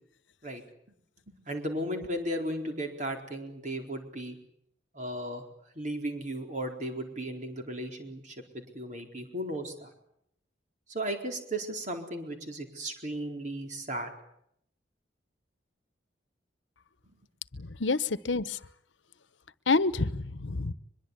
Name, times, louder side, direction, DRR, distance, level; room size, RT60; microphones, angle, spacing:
voice 1, 1.3-4.4 4.9-5.4 5.8-9.9 10.9-14.1, right 1 dB, 40° right, 3 dB, 4.4 m, -35 dB
voice 2, 17.6-18.6 19.7-20.7, left 3 dB, 90° left, 15 dB, 1.0 m, -28 dB
23.5 x 22.0 x 8.6 m, 0.72 s
head